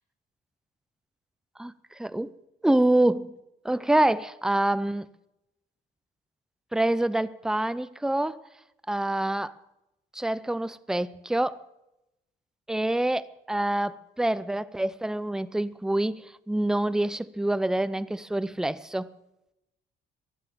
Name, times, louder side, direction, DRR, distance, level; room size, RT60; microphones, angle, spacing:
voice 1, 1.6-2.3 2.6-3.4 3.6-5.1 6.7-8.4 8.9-9.6 10.1-11.6 12.7-19.1, right 1 dB, 5° right, 0.5 m, -26 dB
15.5 x 11.0 x 7.5 m
cardioid pair, 90°, 20 cm